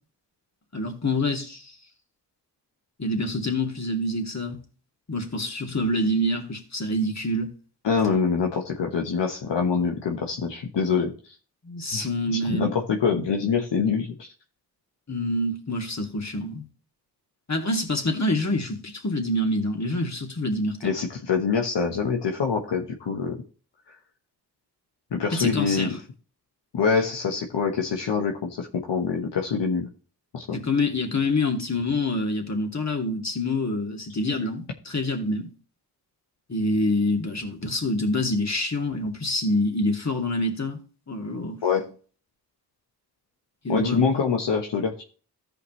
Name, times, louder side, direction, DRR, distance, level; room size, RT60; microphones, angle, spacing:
voice 1, 0.7-1.8 3.0-4.6 5.1-7.5 11.6-12.7 15.1-16.6 17.5-20.9 25.3-26.0 30.5-35.5 36.5-40.8 41.1-41.6 43.6-44.1, left 1 dB, 40° left, 2.5 m, -26 dB
voice 2, 7.8-11.1 11.9-12.1 12.3-14.3 20.8-23.4 25.1-26.0 26.7-29.9 30.3-30.4 41.6-41.9 43.7-45.0, left 5 dB, 80° left, 1.2 m, -25 dB
14.0 x 5.2 x 3.1 m
cardioid pair, 45°, 42 cm